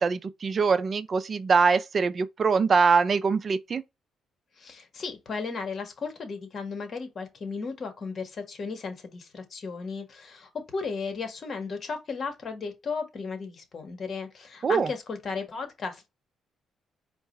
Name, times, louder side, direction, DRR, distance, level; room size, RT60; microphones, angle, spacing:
voice 1, 0.0-3.8 14.6-14.9, right 5 dB, 45° right, 0.4 m, -23 dB
voice 2, 4.6-16.1, left 4 dB, 50° left, 1.4 m, -35 dB
4.6 x 2.2 x 4.0 m
cardioid pair, 90°, 0 cm